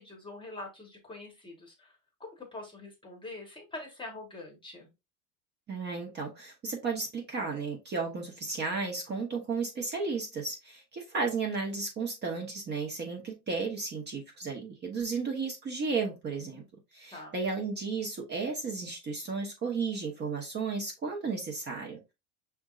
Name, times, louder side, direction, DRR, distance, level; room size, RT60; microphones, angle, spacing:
voice 1, 0.0-4.9 16.5-16.6 17.1-17.4, left 2 dB, 10° left, 1.2 m, -44 dB
voice 2, 5.7-16.6 16.9-22.1, right 4 dB, 20° right, 1.0 m, -34 dB
6.1 x 3.5 x 2.4 m
supercardioid pair, 140°, 47 cm